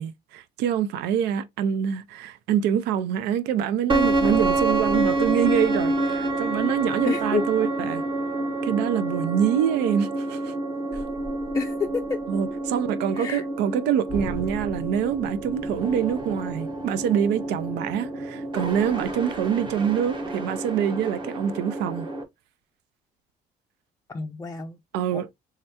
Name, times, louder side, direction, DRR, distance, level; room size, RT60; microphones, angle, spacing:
voice 1, 0.0-8.0 8.6-10.5 12.3-22.1 24.9-25.3, right 9 dB, 85° right, 0.5 m, -25 dB
sound 1, 3.9-22.2, right 2 dB, 30° right, 1.1 m, -28 dB
voice 2, 7.0-7.5 11.5-12.2 13.1-13.4 24.1-24.8 25.1-25.3, left 5 dB, 20° left, 0.4 m, -29 dB
3.5 x 3.3 x 2.7 m
cardioid pair, 110°, 17 cm